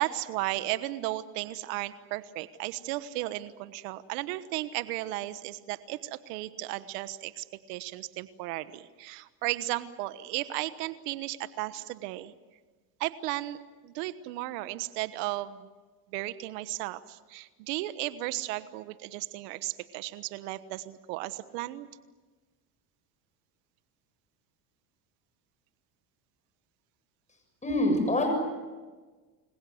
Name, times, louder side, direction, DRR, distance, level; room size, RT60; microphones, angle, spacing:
voice 1, 0.0-12.3 13.0-13.6 13.8-15.7 16.1-21.9, right 16 dB, 85° right, 13 dB, 1.3 m, -35 dB
voice 2, 27.6-28.3, left 1 dB, 15° left, 4 dB, 7.2 m, -25 dB
29.0 x 22.0 x 7.9 m, 1.3 s
supercardioid pair, 100°, 47 cm